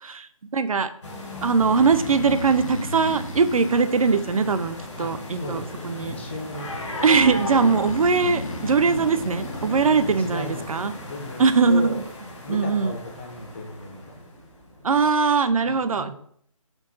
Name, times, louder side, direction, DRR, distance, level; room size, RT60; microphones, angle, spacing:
voice 1, 0.0-0.9 1.4-6.1 7.0-10.9 11.4-12.0 12.5-13.0 14.8-16.1, right 5 dB, 75° right, 11 dB, 0.4 m, -21 dB
sound 1, 1.0-14.5, left 1 dB, 55° left, 1.0 m, -37 dB
Breathing, 1.5-5.2 7.0-10.1, left 2 dB, 70° left, 0.6 m, -35 dB
sound 2, 3.8-15.2, equal, 90° right, 1.6 m, -41 dB
voice 2, 5.0-7.0 10.0-12.0 12.4-14.2 15.7-16.1, left 2 dB, 20° left, 2 dB, 0.4 m, -36 dB
4.5 x 2.3 x 3.8 m, 0.64 s
figure-of-eight pair, 150°, 18 cm